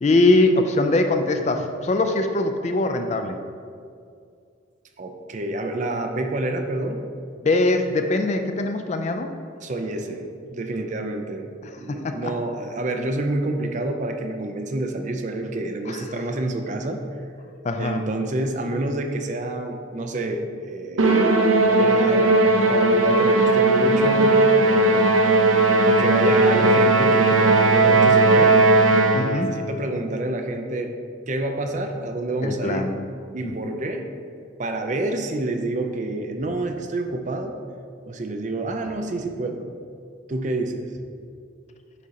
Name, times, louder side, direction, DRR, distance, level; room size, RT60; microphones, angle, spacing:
voice 1, 0.0-3.4 7.4-9.3 11.6-12.3 15.9-16.0 17.6-18.0 29.1-29.5 32.4-33.0 33.4-33.8, left 2 dB, 35° left, 6 dB, 0.3 m, -22 dB
voice 2, 5.0-7.1 9.6-10.2 10.5-11.5 11.8-17.0 17.8-21.3 21.6-25.1 25.9-28.6 29.2-31.0 31.3-32.9 33.3-34.0 34.6-37.6 38.0-39.7 40.3-41.1, right 2 dB, 35° right, 5 dB, 0.4 m, -28 dB
Musical instrument, 21.0-29.5, right 2 dB, 85° right, 0.6 m, -17 dB
8.3 x 2.8 x 5.1 m, 2.3 s
head